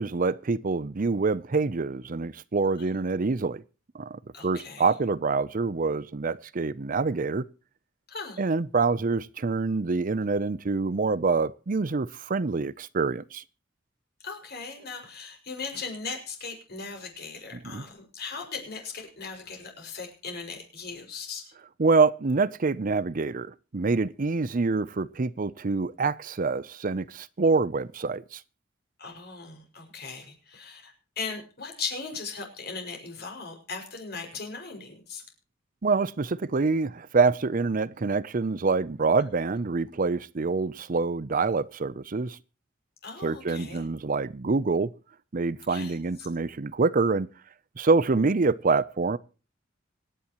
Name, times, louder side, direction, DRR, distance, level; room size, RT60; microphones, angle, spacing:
voice 1, 0.0-3.6 3.9-7.5 8.4-13.4 17.7-17.8 21.8-28.4 35.8-42.4 43.2-44.9 45.3-47.3 47.8-49.2, right 4 dB, 45° right, 0.6 m, -26 dB
voice 2, 4.3-4.9 8.1-8.5 14.2-21.5 29.0-35.2 43.0-43.9 45.7-46.3, left 4 dB, 55° left, 5.8 m, -38 dB
25.5 x 10.0 x 3.0 m
head